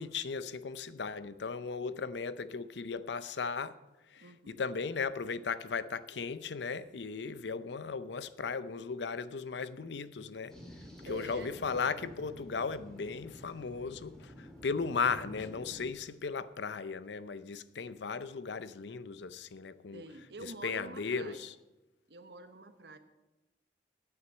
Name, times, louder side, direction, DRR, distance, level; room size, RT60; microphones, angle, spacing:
voice 1, 0.0-3.7 4.1-10.6 11.1-20.0 20.4-21.5, left 5 dB, 80° left, 0.6 m, -36 dB
voice 2, 4.2-4.6 7.3-7.4 11.0-11.5 19.9-21.5 22.1-23.0, right 2 dB, 75° right, 1.1 m, -47 dB
sound 1, 10.5-15.9, equal, 5° left, 1.9 m, -50 dB
9.3 x 9.0 x 8.0 m
head